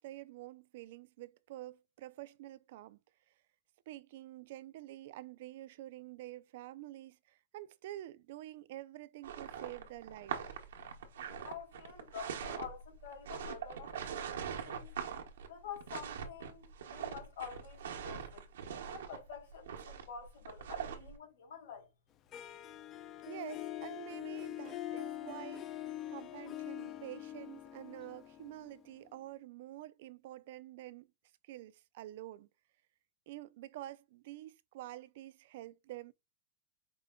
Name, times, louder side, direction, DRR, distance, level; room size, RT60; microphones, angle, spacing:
voice 1, 0.0-3.0 3.9-10.4 23.3-25.8 26.1-31.1 31.4-32.5 33.3-36.1, right 15 dB, 55° right, 0.4 m, -48 dB
sound 1, 9.2-21.1, right 8 dB, 85° right, 1.0 m, -42 dB
voice 2, 11.4-14.9 15.5-18.5 18.9-21.9, left 7 dB, 70° left, 2.8 m, -48 dB
Harp, 22.3-29.2, left 13 dB, 25° left, 0.3 m, -44 dB
4.9 x 2.2 x 3.6 m
supercardioid pair, 160°, 0 cm